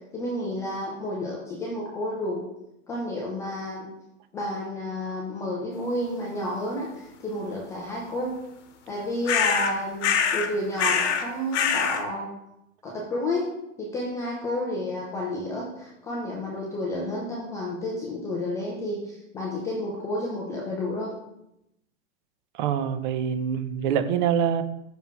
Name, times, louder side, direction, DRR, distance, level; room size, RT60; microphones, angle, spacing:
voice 1, 0.1-2.4 2.9-3.9 4.3-8.3 8.9-12.3 12.8-13.5 13.8-21.1, left 1 dB, 10° left, -3 dB, 0.3 m, -31 dB
sound 1, 9.3-9.7 10.0-10.5 10.8-11.3 11.5-12.0, left 7 dB, 55° left, 1.0 m, -24 dB
voice 2, 22.6-24.6, right 8 dB, 40° right, 11 dB, 0.6 m, -25 dB
5.9 x 3.6 x 5.5 m, 0.86 s
hypercardioid pair, 135°, 40 cm